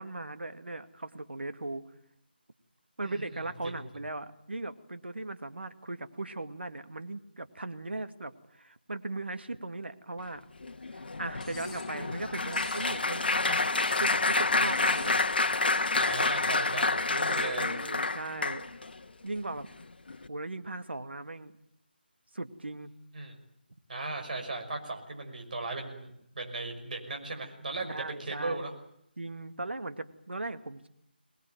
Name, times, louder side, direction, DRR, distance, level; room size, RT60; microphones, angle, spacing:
voice 1, 0.0-1.8 3.0-10.4 10.9-13.6 13.9-15.2 17.3-18.6 19.2-19.7 20.3-21.5 22.3-22.9 27.9-28.6 29.2-30.9, right 2 dB, 90° right, 9 dB, 2.2 m, -38 dB
Applause, 10.6-18.9 19.6-19.8 20.1-20.3, left 3 dB, 65° left, 1.7 m, -28 dB
Cutlery silverware, 11.4-11.9 12.5-13.0 13.6-14.2 14.7-15.2 15.8-16.3 17.1-17.6, left 4 dB, 35° left, 7.9 m, -49 dB
voice 2, 15.9-17.7 23.1-23.4 23.9-28.7, right 2 dB, 50° right, 3 dB, 6.0 m, -37 dB
24.5 x 19.5 x 9.3 m, 0.75 s
figure-of-eight pair, 165°, 6 cm